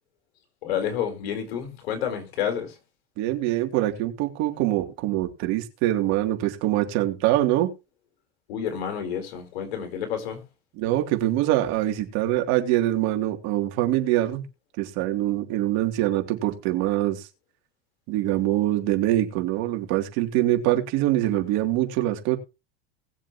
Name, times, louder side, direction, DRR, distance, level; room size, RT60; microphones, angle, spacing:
voice 1, 0.6-2.7 8.5-10.4, left 8 dB, 80° left, 4.4 m, -29 dB
voice 2, 3.2-7.7 10.8-14.4 14.8-17.3 18.1-22.4, right 14 dB, 60° right, 3.2 m, -24 dB
19.5 x 7.4 x 3.1 m
hypercardioid pair, 100°, 31 cm